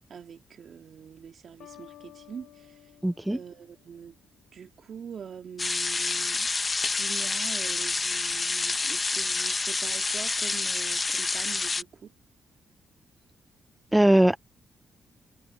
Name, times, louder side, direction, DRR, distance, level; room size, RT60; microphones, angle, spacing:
voice 1, 0.1-2.9 3.3-4.1 4.5-6.5 6.9-12.1, right 7 dB, 60° right, 2.8 m, -44 dB
sound 1, 1.6-4.4, left 13 dB, 85° left, 1.4 m, -53 dB
voice 2, 3.0-3.4 13.9-14.4, right 1 dB, 5° right, 0.4 m, -20 dB
sound 2, 5.6-11.8, left 3 dB, 30° left, 0.7 m, -28 dB
cardioid pair, 90°, 0 cm